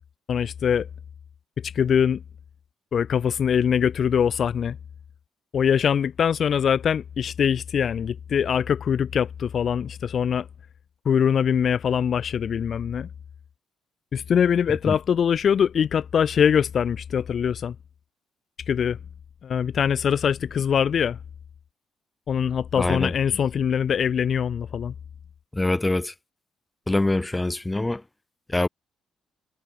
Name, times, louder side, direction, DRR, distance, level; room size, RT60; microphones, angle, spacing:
voice 1, 0.3-0.9 1.6-2.2 2.9-4.8 5.5-10.5 11.1-13.1 14.1-17.7 18.7-19.0 19.4-21.2 22.3-24.9, left 8 dB, 55° left, 0.4 m, -23 dB
voice 2, 22.8-23.1 25.5-26.1 26.9-28.0 28.5-28.7, left 2 dB, 15° left, 0.6 m, -24 dB
cardioid pair, 90°, 0 cm